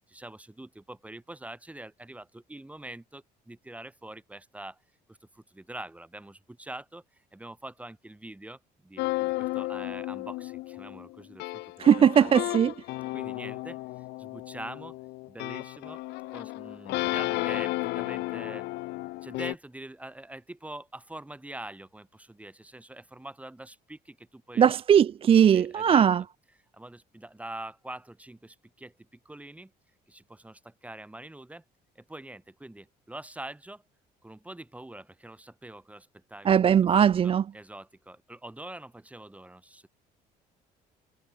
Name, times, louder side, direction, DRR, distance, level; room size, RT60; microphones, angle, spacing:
voice 1, 0.1-4.8 5.1-11.6 11.9-12.7 13.1-13.8 14.2-15.0 15.3-16.0 16.3-18.7 19.2-24.8 25.5-26.1 26.7-29.7 30.1-31.6 32.0-33.8 34.2-36.6 37.0-39.9, right 1 dB, 10° right, 3.7 m, -44 dB
sound 1, 9.0-19.5, left 20 dB, 85° left, 0.6 m, -33 dB
voice 2, 11.8-12.7 24.6-26.2 36.5-37.4, right 8 dB, 35° right, 0.4 m, -20 dB
cardioid pair, 110°, 17 cm